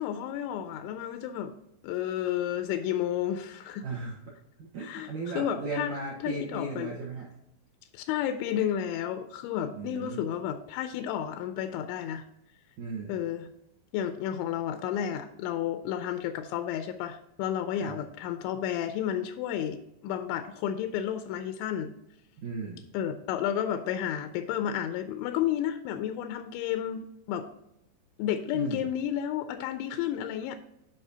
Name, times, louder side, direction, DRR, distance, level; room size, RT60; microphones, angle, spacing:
voice 1, 0.0-1.5 1.8-3.9 4.8-5.9 6.2-7.0 7.9-12.2 13.1-13.5 13.9-21.9 22.9-27.5 28.2-30.6, left 10 dB, 85° left, 8 dB, 2.9 m, -32 dB
voice 2, 3.8-4.3 4.6-7.3 9.7-10.2 12.8-13.2 17.8-18.0 22.4-22.9 28.5-28.9, right 3 dB, 75° right, -4 dB, 1.7 m, -36 dB
10.5 x 5.1 x 2.8 m, 0.82 s
omnidirectional pair, 5.2 m